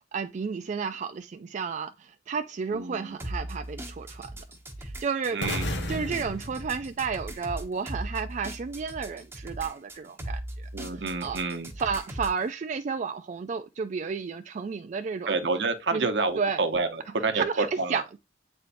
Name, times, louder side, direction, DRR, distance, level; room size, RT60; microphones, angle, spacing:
voice 1, 0.1-4.3 4.8-10.7 10.9-11.4 11.8-15.3 15.9-16.1 16.4-16.6 17.3-18.2, right 5 dB, 45° right, 0.3 m, -32 dB
voice 2, 2.7-3.2 5.3-5.7 10.7-11.7 15.3-18.0, right 3 dB, 80° right, 0.8 m, -28 dB
sound 1, 3.2-12.4, right 1 dB, 15° right, 1.0 m, -38 dB
sound 2, 5.4-7.5, left 1 dB, 85° left, 1.4 m, -35 dB
8.3 x 4.4 x 2.6 m
head